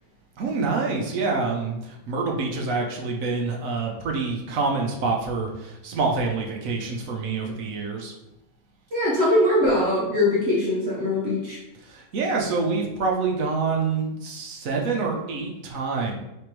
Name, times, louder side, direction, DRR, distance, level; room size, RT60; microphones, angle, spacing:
voice 1, 0.4-8.1 11.8-16.2, right 4 dB, 65° right, 0 dB, 1.1 m, -26 dB
voice 2, 8.9-11.6, left 1 dB, 50° right, -6 dB, 1.2 m, -21 dB
3.5 x 3.3 x 4.5 m, 0.91 s
omnidirectional pair, 1.6 m